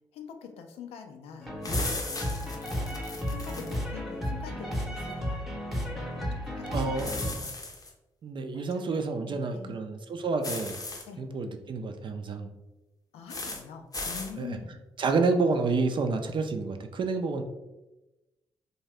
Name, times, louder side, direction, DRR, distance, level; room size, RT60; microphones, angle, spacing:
voice 1, 0.1-1.5 2.1-5.4 5.9-7.5 8.5-9.9 11.1-11.2 13.1-14.8, left 6 dB, 80° left, 5 dB, 0.4 m, -45 dB
sound 1, 1.4-7.3, equal, ahead, 0.8 m, -33 dB
sound 2, 1.6-3.8 7.0-7.9 10.4-11.0 13.3-13.6 13.9-14.3, left 2 dB, 35° left, 0.6 m, -36 dB
voice 2, 6.7-7.1 8.2-10.8 11.2-12.5 14.4-14.6 15.0-17.4, right 4 dB, 50° right, 6 dB, 0.4 m, -29 dB
2.7 x 2.2 x 3.3 m, 1.0 s
supercardioid pair, 45°, 10 cm